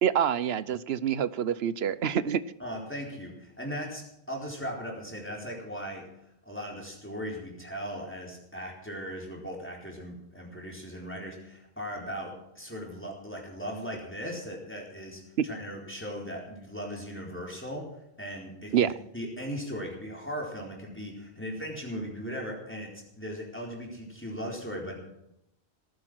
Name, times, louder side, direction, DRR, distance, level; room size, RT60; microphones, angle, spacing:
voice 1, 0.0-2.4 15.4-15.5 18.7-18.9, right 9 dB, 70° right, 17 dB, 1.0 m, -26 dB
voice 2, 2.6-6.1 6.5-17.9 18.2-22.9 23.2-25.0, equal, 10° left, -1 dB, 4.2 m, -38 dB
18.0 x 10.5 x 6.2 m, 0.81 s
omnidirectional pair, 1.1 m